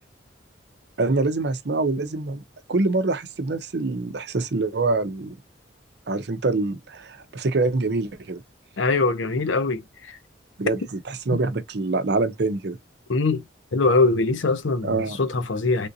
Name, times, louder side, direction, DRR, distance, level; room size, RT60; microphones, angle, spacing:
voice 1, 1.0-2.4 2.7-5.3 6.1-8.4 10.6-12.8 14.8-15.2, right 3 dB, 60° right, 0.6 m, -25 dB
voice 2, 8.8-9.8 10.1-10.2 13.1-13.4 13.7-15.9, left 3 dB, 80° left, 0.7 m, -22 dB
3.6 x 2.6 x 2.6 m
head